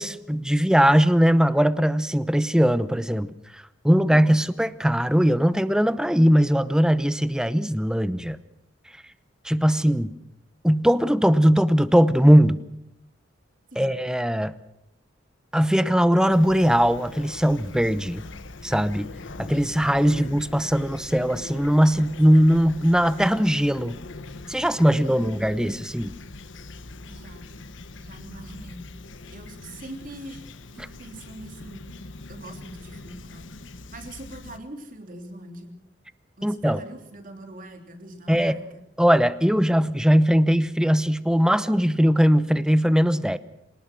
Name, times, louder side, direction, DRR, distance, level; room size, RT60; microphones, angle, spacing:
voice 1, 0.0-3.3 3.8-8.4 9.4-10.1 10.6-12.6 13.8-14.5 15.5-18.2 18.6-19.1 19.4-24.0 24.5-26.2 36.4-36.8 38.3-38.5 39.0-43.4, equal, 5° right, 14 dB, 0.8 m, -20 dB
Fowl / Chirp tweet, 16.3-34.6, left 2 dB, 80° left, 1.2 m, -42 dB
voice 2, 27.1-27.5 28.0-28.8 29.3-30.5 30.7-31.9 32.3-33.5 33.9-35.7 36.4-38.6, right 1 dB, 45° right, 5 dB, 3.4 m, -42 dB
26.5 x 19.0 x 6.3 m, 0.83 s
head